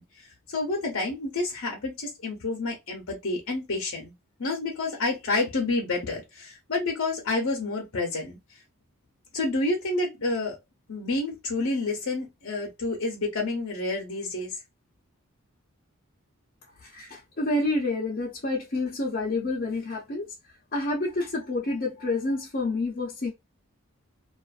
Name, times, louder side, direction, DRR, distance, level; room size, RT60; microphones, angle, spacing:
voice 1, 0.0-4.1 4.4-8.4 9.3-10.6 10.9-14.6, left 2 dB, 80° left, 0.8 m, -29 dB
voice 2, 16.8-20.3 20.7-23.3, left 2 dB, 45° left, 0.7 m, -28 dB
2.5 x 2.4 x 2.4 m
head